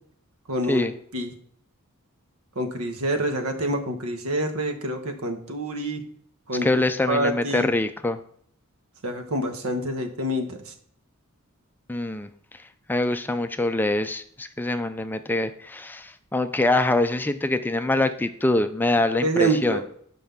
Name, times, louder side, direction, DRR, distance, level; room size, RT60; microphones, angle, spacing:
voice 1, 0.5-0.9 1.1-1.3 2.5-6.0 6.5-6.8 7.1-7.7 9.0-10.7 19.2-19.8, right 1 dB, 80° right, 6 dB, 1.2 m, -26 dB
voice 2, 6.6-8.2 11.9-12.6 12.9-19.8, left 2 dB, 10° left, 9 dB, 0.3 m, -24 dB
5.7 x 5.5 x 6.9 m, 0.64 s
head